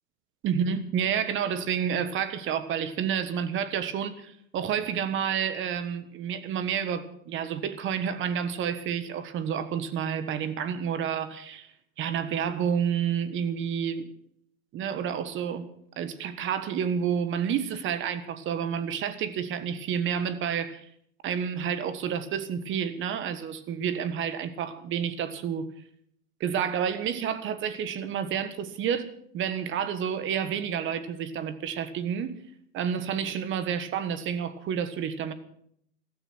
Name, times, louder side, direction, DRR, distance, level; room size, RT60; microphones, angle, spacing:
voice 1, 0.4-11.7 12.0-14.1 14.7-15.7 16.0-20.8 21.2-25.7 26.4-29.1 29.3-32.4 32.7-35.3, right 8 dB, 25° right, 13 dB, 1.4 m, -29 dB
15.5 x 13.5 x 6.2 m, 0.69 s
hypercardioid pair, 130°, 45 cm